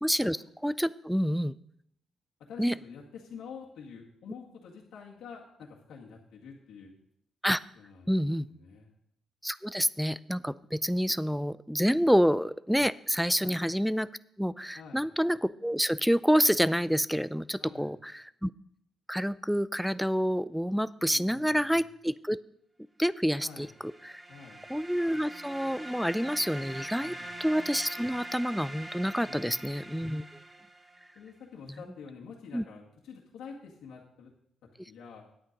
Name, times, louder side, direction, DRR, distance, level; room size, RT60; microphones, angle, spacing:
voice 1, 0.0-0.4 0.6-1.6 2.6-2.8 7.4-7.6 8.1-8.5 9.4-14.1 14.4-18.5 19.1-22.4 23.0-23.7 24.0-24.2 24.7-30.2 32.5-32.6, equal, ahead, 18 dB, 0.4 m, -28 dB
voice 2, 2.4-6.9 7.8-8.1 8.6-8.9 13.4-13.6 14.8-15.0 17.6-18.0 21.1-21.8 23.4-23.7 24.3-24.6 27.0-27.3 29.2-29.8 31.2-34.3 34.9-35.2, left 6 dB, 75° left, -3 dB, 1.9 m, -47 dB
sound 1, 23.5-31.2, right 1 dB, 15° right, 0.9 m, -44 dB
10.0 x 8.6 x 5.3 m, 0.73 s
cardioid pair, 90°, 0 cm